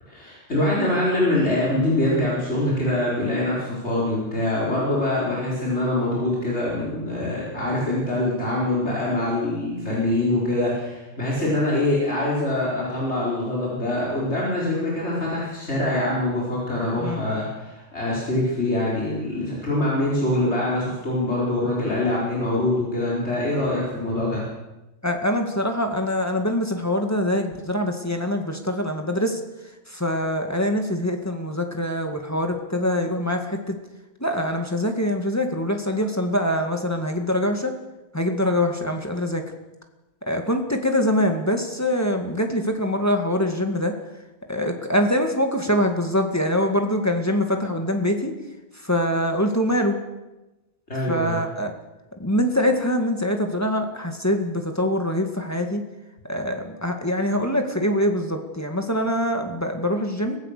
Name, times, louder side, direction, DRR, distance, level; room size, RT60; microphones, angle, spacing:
voice 1, 0.1-24.4 50.9-51.4, left 1 dB, 85° left, -5 dB, 5.1 m, -24 dB
voice 2, 25.0-29.4 29.9-33.8 34.2-37.7 38.1-39.4 40.3-43.9 44.5-48.3 48.7-50.0 51.1-51.7 52.2-55.8 56.3-60.4, left 1 dB, 15° left, 4 dB, 2.0 m, -24 dB
23.5 x 17.5 x 6.8 m, 1.1 s
omnidirectional pair, 1.1 m